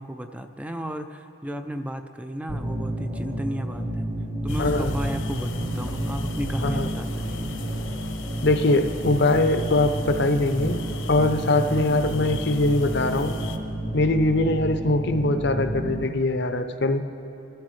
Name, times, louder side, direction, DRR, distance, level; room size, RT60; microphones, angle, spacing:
voice 1, 0.0-4.1 4.4-7.5, equal, 5° right, 7 dB, 0.4 m, -34 dB
sound 1, 2.5-16.0, right 1 dB, 45° right, 1.5 m, -31 dB
sound 2, 4.5-13.6, left 2 dB, 75° left, 1.0 m, -37 dB
voice 2, 4.6-4.9 6.6-6.9 8.4-10.8 11.1-13.4 13.9-17.1, left 2 dB, 55° left, 8 dB, 0.7 m, -22 dB
24.5 x 13.0 x 3.2 m, 2.9 s
head